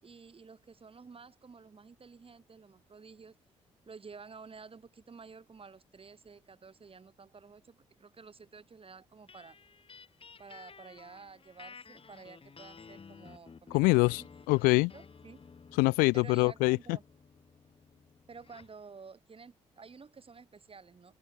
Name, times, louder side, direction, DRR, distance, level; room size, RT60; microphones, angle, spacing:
voice 1, 0.0-3.4 3.9-9.6 10.4-14.3 14.9-15.4 16.1-17.0 18.3-21.2, right 5 dB, 35° right, 5.3 m, -52 dB
sound 1, 9.3-18.8, left 5 dB, 35° left, 2.7 m, -54 dB
voice 2, 13.7-14.9 15.7-16.8, left 26 dB, 65° left, 0.4 m, -25 dB
figure-of-eight pair, 40°, 16 cm